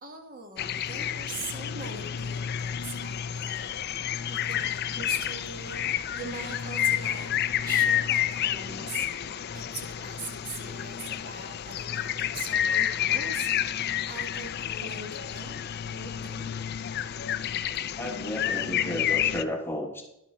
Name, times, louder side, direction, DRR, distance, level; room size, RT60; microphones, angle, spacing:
voice 1, 0.0-9.1 9.5-15.6 15.9-16.5 17.5-17.6, right 3 dB, 40° right, 4 dB, 1.3 m, -42 dB
sound 1, 0.6-19.4, left 10 dB, 45° left, 0.4 m, -30 dB
voice 2, 18.0-20.0, left 1 dB, 10° left, 1 dB, 1.2 m, -33 dB
11.0 x 8.2 x 4.2 m, 0.85 s
head